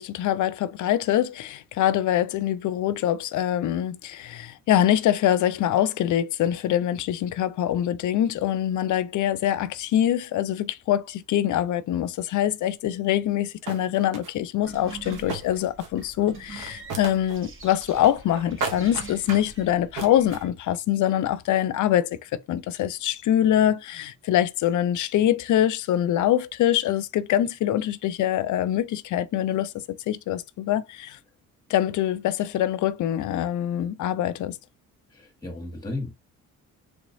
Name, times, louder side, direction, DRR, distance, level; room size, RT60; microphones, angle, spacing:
voice 1, 0.0-31.2 31.7-34.6, left 11 dB, 55° left, 0.5 m, -24 dB
sound 1, 13.3-13.4 13.7-14.3 15.0-16.1 16.4-17.4 17.6-18.3 18.6-19.5 20.0-20.4, right 4 dB, 60° right, 1.1 m, -34 dB
sound 2, 14.6-20.5, right 3 dB, 35° right, 1.2 m, -44 dB
voice 2, 35.1-36.1, left 2 dB, 10° left, 1.4 m, -34 dB
3.3 x 3.0 x 2.6 m
supercardioid pair, 55°, 35 cm